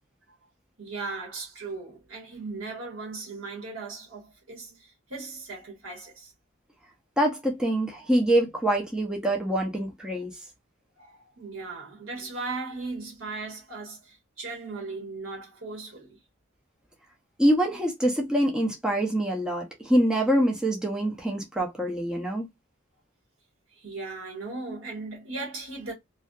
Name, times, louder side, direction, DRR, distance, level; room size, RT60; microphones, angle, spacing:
voice 1, 0.8-6.3 7.9-8.1 11.0-16.2 23.7-25.9, right 3 dB, 75° right, 1.3 m, -37 dB
voice 2, 7.2-10.4 17.4-22.5, right 1 dB, 5° right, 0.5 m, -25 dB
2.6 x 2.3 x 2.2 m
head